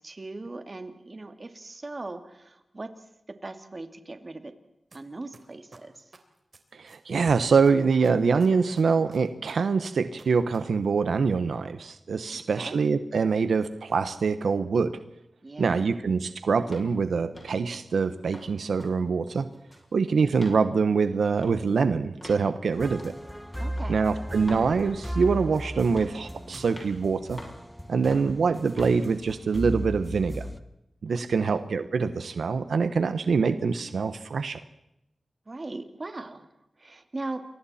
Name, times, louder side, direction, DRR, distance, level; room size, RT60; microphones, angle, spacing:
voice 1, 0.0-4.5 4.9-6.1 12.3-12.8 15.4-15.9 23.6-24.0 31.1-31.6 35.5-36.5 36.8-37.4, right 2 dB, 35° right, 8 dB, 2.3 m, -40 dB
sound 1, 4.9-5.0 5.3-7.3 7.6-10.6 10.8-10.9, right 3 dB, 50° right, 3.4 m, -52 dB
voice 2, 6.7-15.0 15.6-19.5 19.9-23.1 23.9-27.4 27.9-30.5 31.0-34.6, right 5 dB, 90° right, 11 dB, 1.1 m, -24 dB
sound 2, 16.7-16.9 17.3-17.6 18.0-18.5 18.8-19.0 19.3-19.9 20.3-20.6 21.3-21.6 22.2-22.4 23.0-23.2 23.8-23.9 24.5-24.7 25.2-25.5 26.0-26.2 26.7-26.9 27.4-27.6 28.1-28.3 28.8-29.0, left 1 dB, 25° left, 6.7 m, -44 dB
sound 3, 22.7-30.6, equal, 5° left, 1.4 m, -36 dB
29.0 x 23.0 x 4.3 m, 0.86 s
wide cardioid pair, 100°, 0 cm